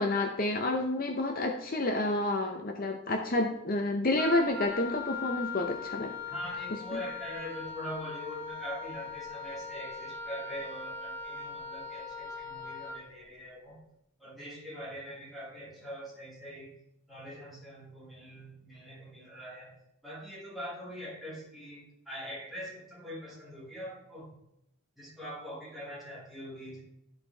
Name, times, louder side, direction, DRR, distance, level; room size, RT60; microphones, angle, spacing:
voice 1, 0.0-6.1, left 2 dB, 40° left, 3 dB, 0.7 m, -29 dB
Wind instrument woodwind instrument, 4.2-13.0, left 4 dB, 15° left, 2.6 m, -40 dB
voice 2, 6.3-13.8 14.2-16.7 17.1-19.8 20.0-24.3 25.0-26.8, equal, ahead, -6 dB, 2.4 m, -43 dB
12.5 x 4.3 x 3.3 m, 0.82 s
head